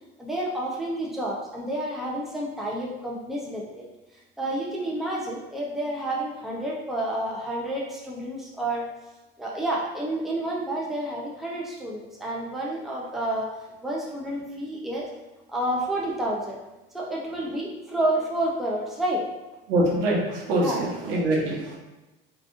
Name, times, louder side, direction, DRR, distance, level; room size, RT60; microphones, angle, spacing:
voice 1, 0.2-3.8 4.4-8.8 9.4-13.5 13.8-15.1 15.5-16.6 16.9-19.2 20.6-20.8, right 1 dB, ahead, -4 dB, 0.6 m, -29 dB
voice 2, 19.7-21.8, right 1 dB, 70° right, -3 dB, 0.9 m, -24 dB
3.3 x 2.5 x 2.5 m, 1.0 s
figure-of-eight pair, 70°, 29 cm